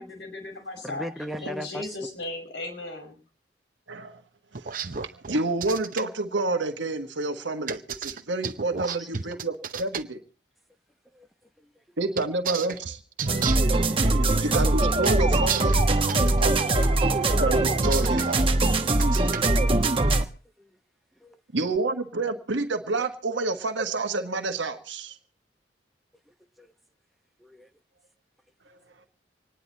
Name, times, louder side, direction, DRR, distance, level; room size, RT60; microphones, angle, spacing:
voice 1, 0.0-1.1 1.4-3.2, left 2 dB, 85° left, 2 dB, 5.7 m, -36 dB
voice 2, 0.8-2.0 8.8-9.1 11.1-11.3 11.6-11.7 20.6-20.7 21.2-21.4 26.3-26.7 27.4-27.7, equal, ahead, 4 dB, 0.9 m, -39 dB
voice 3, 3.9-4.2 4.5-10.2 12.0-13.0 14.3-15.8 17.4-18.3 21.5-25.2 28.7-28.8, right 2 dB, 90° right, 5 dB, 1.4 m, -29 dB
sound 1, 4.5-6.0 7.7-10.0 12.2-13.7 15.0-16.6 17.6-18.4 18.9-19.5, right 6 dB, 50° right, 0.8 m, -32 dB
sound 2, 13.3-20.2, right 2 dB, 30° right, 1.1 m, -22 dB
26.0 x 10.0 x 4.2 m, 0.36 s
head